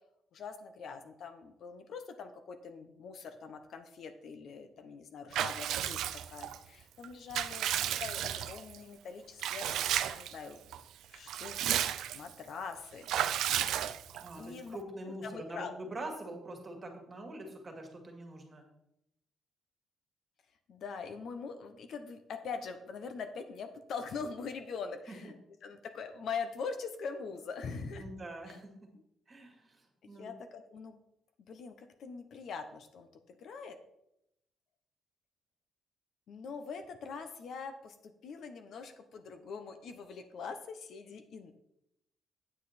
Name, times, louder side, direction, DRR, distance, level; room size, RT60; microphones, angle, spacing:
voice 1, 0.3-9.8 10.2-10.6 11.1-13.1 14.3-14.8 15.0-15.8 20.7-28.1 28.5-28.6 30.2-31.0 31.5-33.8 36.3-41.5, left 5 dB, 60° left, 7 dB, 0.9 m, -43 dB
Water / Bathtub (filling or washing) / Liquid, 5.3-6.6 7.0-8.8 9.4-10.4 10.7-10.8 11.1-12.3 13.1-14.3, right 11 dB, 90° right, 0.5 m, -33 dB
voice 2, 14.2-18.7 25.1-25.3 28.0-28.7 29.3-30.3, right 1 dB, 25° right, 2 dB, 2.0 m, -44 dB
8.8 x 7.5 x 4.3 m, 0.80 s
cardioid pair, 140°, 0 cm